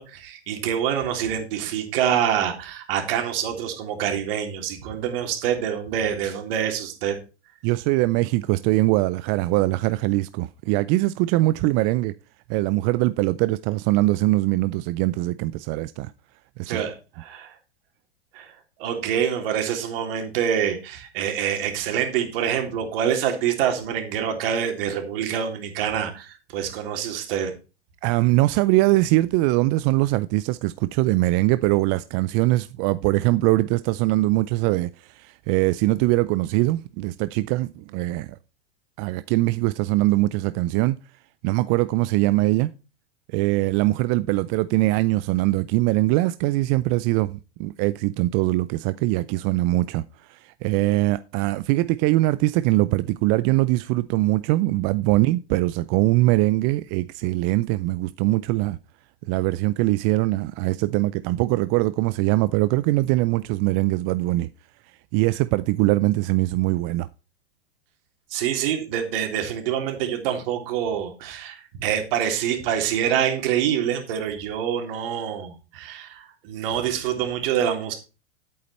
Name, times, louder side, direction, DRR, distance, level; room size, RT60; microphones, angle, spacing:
voice 1, 0.0-7.2 16.7-17.6 18.3-27.5 68.3-77.9, right 9 dB, 55° right, 3.4 m, -26 dB
voice 2, 7.6-12.1 12.5-16.1 16.6-16.8 28.0-38.4 39.0-41.0 41.4-42.7 43.3-58.8 59.3-64.5 65.1-67.1, right 18 dB, 35° right, 0.5 m, -22 dB
11.0 x 8.6 x 4.3 m
hypercardioid pair, 100°, 34 cm